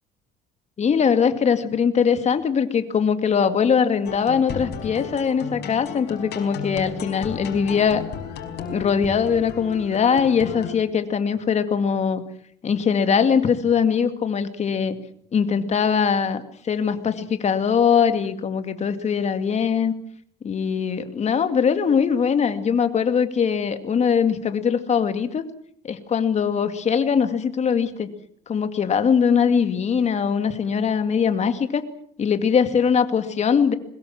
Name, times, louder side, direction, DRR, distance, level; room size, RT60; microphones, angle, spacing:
voice 1, 0.8-8.0 8.7-12.2 12.6-15.0 15.3-19.9 20.4-25.4 25.8-28.1 28.5-31.9 32.2-33.7, left 6 dB, 35° left, 9 dB, 2.3 m, -21 dB
sound 1, 4.1-10.8, left 7 dB, 65° left, 5.0 m, -34 dB
22.0 x 21.0 x 7.4 m, 0.65 s
cardioid pair, 125°, 18 cm